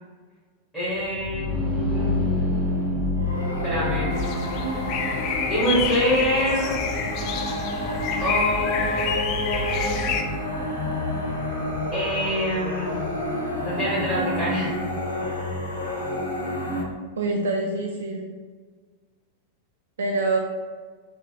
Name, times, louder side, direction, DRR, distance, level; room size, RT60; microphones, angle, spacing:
voice 1, 0.7-2.2 3.6-4.1 5.5-6.7 8.2-10.0 11.9-13.0 13.6-14.8, equal, 5° right, -11 dB, 1.5 m, -26 dB
sound 1, 0.9-12.6, left 2 dB, 20° left, 0.9 m, -30 dB
sound 2, 3.2-16.8, left 1 dB, 85° left, 1.0 m, -29 dB
sound 3, 4.1-10.2, left 6 dB, 40° left, 0.4 m, -29 dB
voice 2, 17.2-18.3 20.0-20.4, right 2 dB, 65° right, 2 dB, 0.4 m, -25 dB
6.0 x 2.1 x 2.7 m, 1.5 s
figure-of-eight pair, 90°, 0 cm